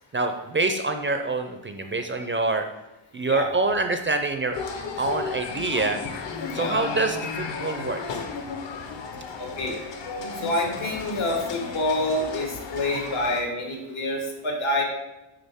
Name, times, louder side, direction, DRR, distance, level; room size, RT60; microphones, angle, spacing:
voice 1, 0.1-2.7 3.1-4.6 5.0-6.0 6.5-8.0, right 3 dB, 25° right, 6 dB, 0.4 m, -26 dB
sound 1, 4.5-13.4, left 5 dB, 60° left, 0.9 m, -34 dB
voice 2, 9.4-9.8 10.1-14.8, left 1 dB, 80° left, 0 dB, 1.8 m, -27 dB
9.6 x 3.9 x 3.5 m, 0.98 s
wide cardioid pair, 130°, 49 cm